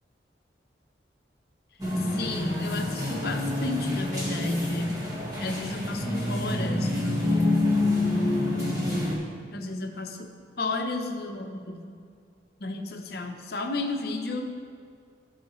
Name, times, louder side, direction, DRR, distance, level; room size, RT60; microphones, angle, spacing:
sound 1, 1.8-9.1, left 2 dB, 20° right, 1.6 m, -28 dB
voice 1, 2.0-5.0 5.4-7.7 9.5-10.3 10.6-11.9 12.6-14.5, left 2 dB, 55° left, 4 dB, 0.8 m, -31 dB
16.0 x 5.7 x 3.1 m, 2.3 s
head